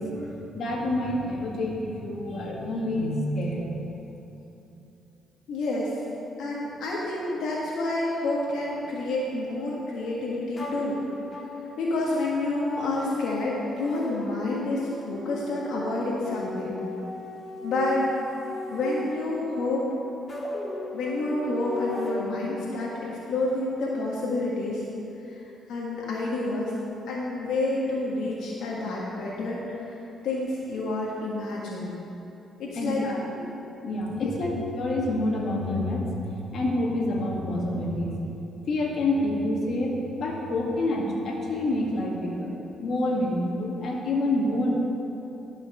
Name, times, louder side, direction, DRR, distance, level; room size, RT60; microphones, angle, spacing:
voice 1, 0.0-3.8 32.8-33.5 33.8-38.2 38.7-42.5 42.8-44.7, left 1 dB, 60° left, -2 dB, 2.0 m, -28 dB
voice 2, 5.5-6.0 6.4-11.0 11.8-16.8 17.6-18.0 18.7-19.9 20.9-24.8 25.2-25.4 25.7-26.7 27.1-32.0 32.6-33.1 34.1-34.3, left 2 dB, 75° left, -5 dB, 1.7 m, -29 dB
sound 1, 10.6-22.9, left 2 dB, 35° left, 1.9 m, -37 dB
12.5 x 5.8 x 6.8 m, 2.9 s
cardioid pair, 90°, 0 cm